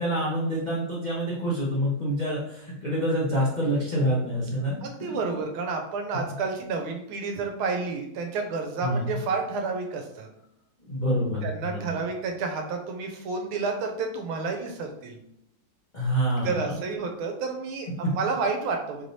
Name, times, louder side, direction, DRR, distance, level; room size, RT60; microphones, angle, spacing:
voice 1, 0.0-4.8 8.8-9.2 10.9-12.0 15.9-16.7, equal, 60° left, -8 dB, 0.4 m, -27 dB
voice 2, 4.8-10.3 11.4-15.2 16.4-19.1, right 4 dB, 80° right, 3 dB, 1.5 m, -30 dB
4.6 x 3.2 x 2.7 m, 0.75 s
omnidirectional pair, 2.3 m